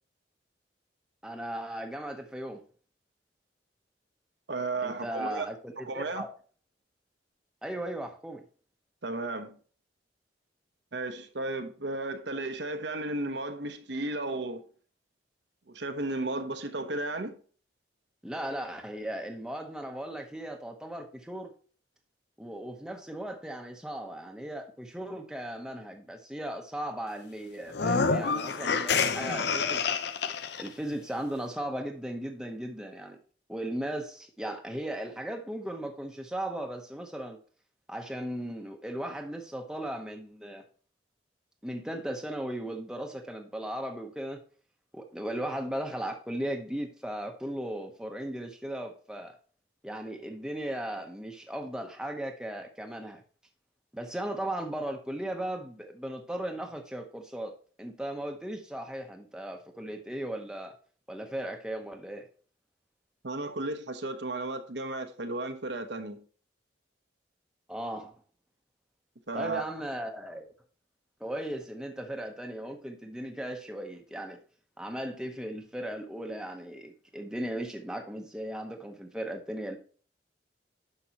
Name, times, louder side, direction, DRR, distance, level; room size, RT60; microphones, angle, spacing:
voice 1, 1.2-2.6 4.8-6.3 7.6-8.4 18.2-21.5 22.4-30.0 30.6-33.2 33.5-37.4 37.9-40.6 41.6-44.4 44.9-49.4 49.8-53.2 53.9-57.5 57.8-60.7 61.1-62.3 67.7-68.1 69.3-70.5 71.2-74.4 74.8-79.8, right 1 dB, 5° right, 0.9 m, -37 dB
voice 2, 4.5-5.5 5.9-6.2 9.0-9.6 10.9-14.6 15.7-17.4 63.2-66.2 69.3-69.6, right 2 dB, 75° right, 1.0 m, -34 dB
sound 1, 27.7-30.7, left 5 dB, 65° left, 0.6 m, -28 dB
10.0 x 6.7 x 2.9 m
head